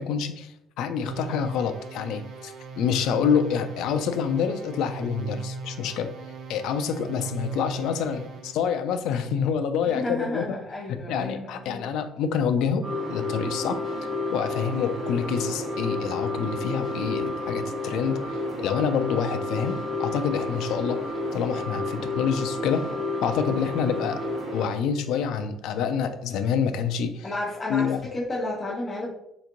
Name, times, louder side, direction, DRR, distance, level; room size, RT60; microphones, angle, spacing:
voice 1, 0.0-6.1 6.5-10.6 10.9-13.8 14.3-21.1 21.3-22.9 23.2-24.2 24.5-27.3 27.7-28.0, left 7 dB, 80° left, 9 dB, 0.3 m, -27 dB
sound 1, 1.1-8.6, right 3 dB, 50° right, 0.4 m, -38 dB
voice 2, 9.9-11.8 23.4-23.9 27.2-29.1, left 1 dB, 25° left, -4 dB, 0.5 m, -32 dB
sound 2, 12.8-24.7, left 2 dB, 30° right, 1.0 m, -31 dB
3.8 x 2.9 x 2.5 m, 0.82 s
cardioid pair, 155°, 0 cm